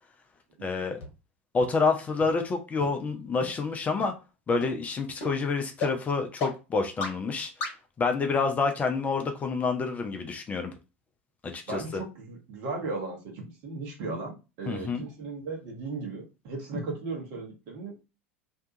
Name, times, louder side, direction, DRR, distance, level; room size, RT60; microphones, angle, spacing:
voice 1, 0.6-1.0 1.5-4.1 4.5-7.5 8.0-10.7 11.4-12.0 14.7-15.0, left 4 dB, 20° left, 0.4 m, -28 dB
sound 1, 1.0-1.1 1.6-1.7 2.2-2.3 2.8-2.9 3.4-3.5 4.0-4.1 4.6-4.7 5.2-5.3 5.8-5.9 6.4-6.5 7.0-7.1 7.6-7.7, left 3 dB, 55° left, 0.9 m, -32 dB
voice 2, 11.7-18.0, right 3 dB, 45° right, 1.0 m, -36 dB
2.7 x 2.2 x 2.6 m
figure-of-eight pair, 75°, 7 cm